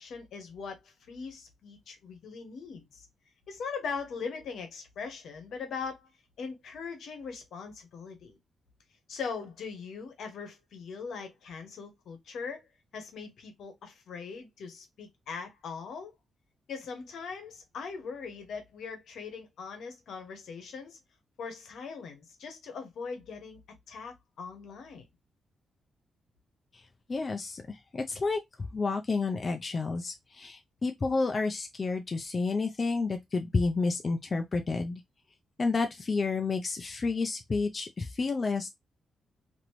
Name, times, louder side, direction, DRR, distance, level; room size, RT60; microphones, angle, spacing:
voice 1, 0.0-3.1 3.5-6.1 6.4-8.4 9.1-12.6 12.9-16.1 16.7-21.0 21.4-23.6 23.9-25.1, left 5 dB, 75° left, 1.0 m, -40 dB
voice 2, 27.1-28.4 28.7-35.0 35.6-38.7, left 4 dB, 35° left, 0.4 m, -30 dB
2.9 x 2.6 x 2.9 m
cardioid pair, 100°, 0 cm